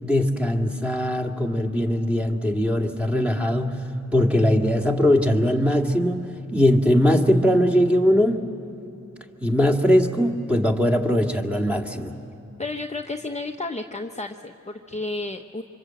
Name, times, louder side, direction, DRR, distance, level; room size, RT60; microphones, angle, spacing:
voice 1, 0.0-3.8 4.1-6.2 6.5-8.5 9.4-12.1, equal, 5° right, 1 dB, 2.1 m, -20 dB
voice 2, 12.6-15.6, left 2 dB, 20° left, 3 dB, 0.9 m, -32 dB
26.0 x 24.5 x 7.8 m, 2.7 s
cardioid pair, 40°, 31 cm